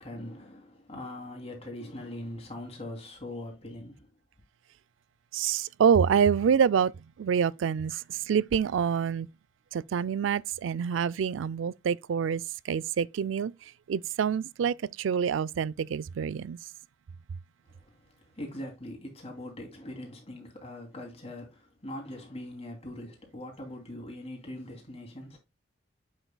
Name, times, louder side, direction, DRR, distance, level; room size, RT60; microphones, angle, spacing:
voice 1, 0.0-4.1 17.7-18.0 18.3-25.4, left 1 dB, 35° left, 2.7 m, -41 dB
voice 2, 5.3-6.9 7.2-7.9 8.3-9.3 9.7-12.4 12.7-13.5 13.9-16.6, right 7 dB, 75° right, 0.3 m, -26 dB
7.9 x 6.4 x 2.2 m
head